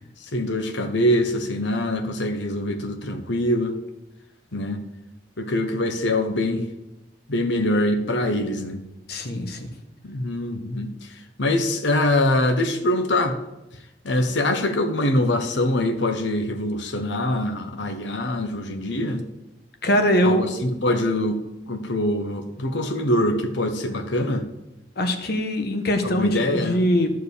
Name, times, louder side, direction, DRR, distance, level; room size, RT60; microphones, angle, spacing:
voice 1, 0.2-3.7 4.5-4.8 5.4-6.6 7.3-8.8 10.0-10.9 11.4-13.4 14.0-19.2 20.2-21.4 21.7-24.4 26.0-26.8, left 1 dB, 80° left, 6 dB, 1.1 m, -23 dB
voice 2, 9.1-9.7 19.8-20.4 25.0-27.1, equal, 60° left, 6 dB, 1.4 m, -22 dB
12.0 x 4.8 x 8.3 m, 0.94 s
head